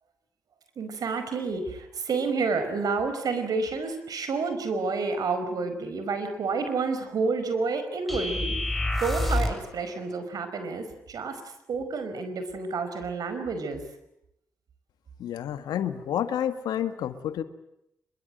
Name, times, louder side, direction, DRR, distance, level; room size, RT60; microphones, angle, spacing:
voice 1, 0.8-11.4 11.7-13.8, right 4 dB, 65° right, 9 dB, 5.1 m, -29 dB
sound 1, 8.1-9.7, left 1 dB, ahead, 7.2 m, -27 dB
voice 2, 15.2-17.4, left 10 dB, 75° left, 11 dB, 1.8 m, -29 dB
25.5 x 23.0 x 9.1 m, 0.79 s
hypercardioid pair, 40°, 7 cm